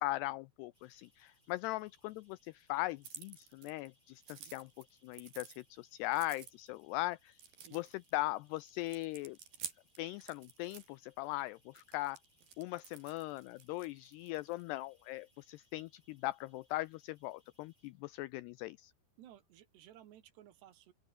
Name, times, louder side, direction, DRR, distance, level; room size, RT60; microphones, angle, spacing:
voice 1, 0.0-7.4 7.7-9.4 10.0-12.2 12.6-18.9, left 18 dB, 90° left, 2.3 m, -39 dB
sound 1, 0.7-20.2, left 1 dB, 10° left, 7.9 m, -74 dB
sound 2, 3.0-3.9 4.2-5.6 6.1-6.8 7.3-8.2 8.6-10.9 11.7-14.6, right 8 dB, 55° right, 4.6 m, -51 dB
voice 2, 19.2-20.9, right 12 dB, 70° right, 3.6 m, -58 dB
open air
omnidirectional pair, 5.3 m